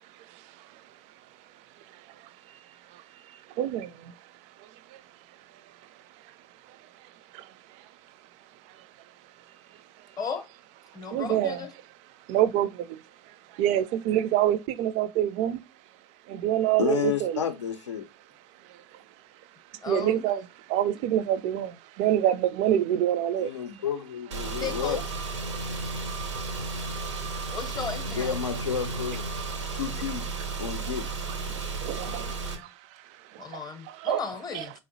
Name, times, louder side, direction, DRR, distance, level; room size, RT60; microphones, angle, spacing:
voice 1, 0.2-0.8 1.9-2.3 2.9-3.0 3.6-4.1 4.6-5.0 6.3-6.4 7.3-7.9 8.7-8.8 11.1-11.7 12.3-15.6 16.3-17.4 18.7-18.8 19.8-23.5 24.4-24.6 26.4-26.6 26.9-27.3 30.6-30.7 31.7-32.7 33.3-33.6 33.9-34.2 34.5-34.6, right 11 dB, 50° right, 0.4 m, -27 dB
voice 2, 10.9-11.7 19.8-20.2 24.6-25.0 27.5-28.5 33.4-34.7, left 5 dB, 25° left, 0.6 m, -35 dB
voice 3, 16.8-18.0 23.4-25.0 28.1-29.2 29.7-30.2 30.6-31.0, left 8 dB, 85° left, 0.5 m, -31 dB
Car / Engine, 24.3-32.6, right 3 dB, 90° right, 0.7 m, -33 dB
3.6 x 2.0 x 2.6 m
hypercardioid pair, 80°, 15 cm